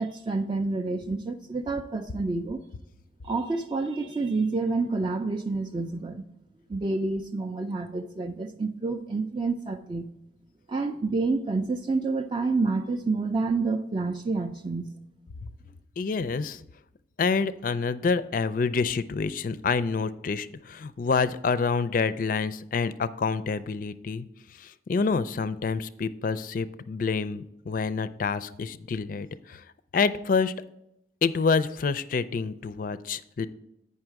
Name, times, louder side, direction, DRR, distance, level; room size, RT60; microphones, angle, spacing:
voice 1, 0.0-2.6 3.2-6.3 6.7-10.1 10.7-14.9, right 3 dB, 25° right, 5 dB, 0.3 m, -28 dB
voice 2, 16.0-16.6 17.2-24.3 24.6-29.6 29.9-30.5 31.2-33.5, left 5 dB, 50° left, 15 dB, 0.4 m, -27 dB
8.9 x 5.6 x 4.7 m, 0.85 s
head